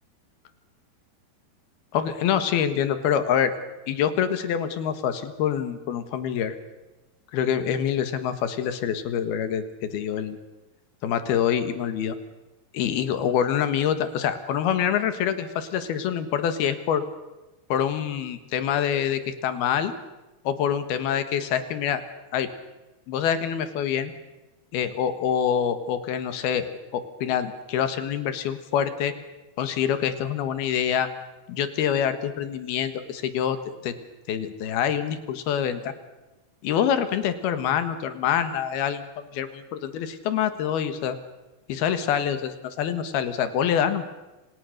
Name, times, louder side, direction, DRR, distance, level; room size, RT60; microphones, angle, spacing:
voice 1, 1.9-3.5 3.9-6.6 7.3-10.4 11.0-12.2 12.7-17.0 17.7-19.9 20.4-22.0 22.3-22.5 23.1-24.1 24.7-29.1 29.6-31.1 31.5-33.6 33.8-33.9 34.3-35.9 36.6-41.2 41.7-44.0, left 9 dB, 70° left, 11 dB, 3.3 m, -26 dB
29.5 x 27.5 x 6.6 m, 1.1 s
omnidirectional pair, 4.9 m